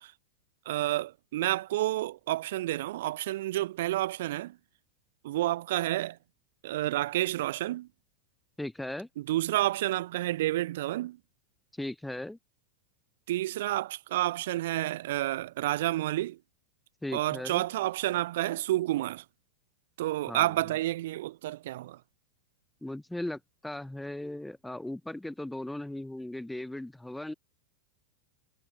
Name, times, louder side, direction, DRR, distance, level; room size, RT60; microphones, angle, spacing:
voice 1, 0.7-4.6 5.2-6.2 6.6-7.9 9.2-11.2 13.3-16.4 17.1-19.2 20.0-22.0, right 15 dB, 55° right, 2.0 m, -30 dB
voice 2, 8.6-9.1 11.7-12.4 17.0-17.6 20.3-20.5 22.8-27.3, left 1 dB, 5° left, 1.6 m, -37 dB
figure-of-eight pair, 90°, 0 cm